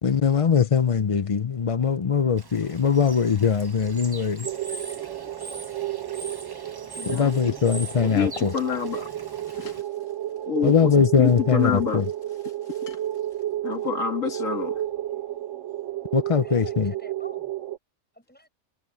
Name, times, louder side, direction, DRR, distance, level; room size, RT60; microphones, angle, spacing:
voice 1, 0.0-4.5 7.1-8.5 10.6-12.0 16.1-16.9, left 6 dB, 40° left, 0.5 m, -21 dB
Bird / Water, 2.4-9.8, right 2 dB, 20° right, 0.9 m, -42 dB
sound 1, 4.4-17.8, right 12 dB, 70° right, 1.2 m, -32 dB
voice 2, 7.0-7.5 8.0-9.1 9.5-9.9 10.5-12.0 12.7-13.0 13.6-14.8, left 6 dB, 85° left, 2.1 m, -28 dB
voice 3, 16.3-17.5 18.1-18.5, equal, 5° left, 6.6 m, -47 dB
omnidirectional pair, 1.3 m